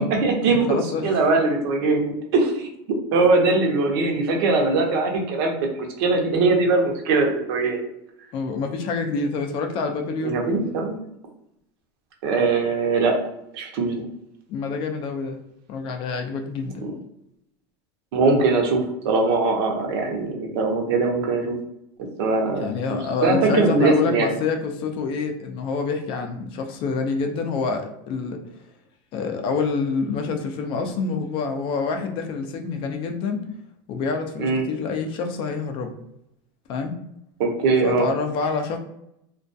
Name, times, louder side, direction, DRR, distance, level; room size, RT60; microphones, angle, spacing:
voice 1, 0.0-0.7 1.0-2.7 3.1-7.8 10.2-11.0 12.2-13.1 13.5-14.0 16.8-16.9 18.1-21.5 22.2-22.6 22.9-24.3 34.4-34.6 37.4-38.1, right 3 dB, 75° right, 2 dB, 0.7 m, -21 dB
voice 2, 0.7-1.2 8.3-10.4 14.5-15.4 15.7-16.8 22.6-28.5 29.1-33.5 33.9-35.9 36.7-36.9 37.8-38.8, left 4 dB, 40° left, 5 dB, 0.4 m, -27 dB
2.3 x 2.2 x 2.5 m, 0.81 s
supercardioid pair, 150°, 13 cm